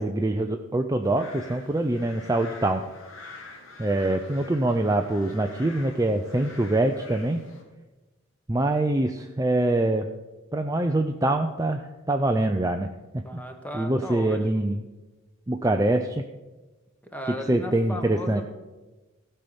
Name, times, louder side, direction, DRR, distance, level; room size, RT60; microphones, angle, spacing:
voice 1, 0.0-2.8 3.8-7.4 8.5-10.1 10.5-12.9 13.1-13.2 13.7-14.8 15.5-16.2 17.3-18.4, right 2 dB, 15° right, 5 dB, 0.4 m, -24 dB
sound 1, 1.0-7.6, left 3 dB, 65° left, 2.1 m, -46 dB
voice 2, 13.2-14.6 17.1-18.4, left 1 dB, 5° left, 4 dB, 1.3 m, -36 dB
15.5 x 5.6 x 6.9 m, 1.1 s
head